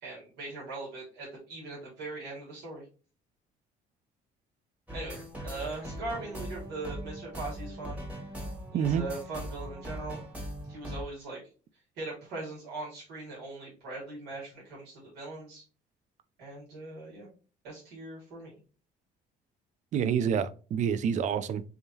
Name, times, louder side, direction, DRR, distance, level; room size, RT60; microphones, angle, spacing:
voice 1, 0.0-2.9 4.9-5.2 5.4-8.0 8.7-10.2 10.7-11.4 12.0-15.6 16.4-17.3 17.6-18.5, right 2 dB, 80° right, 2.1 m, -40 dB
sound 1, 4.9-11.0, equal, 10° right, 1.2 m, -40 dB
voice 2, 19.9-21.6, right 8 dB, 45° right, 0.4 m, -27 dB
3.5 x 3.4 x 2.7 m
cardioid pair, 110°, 17 cm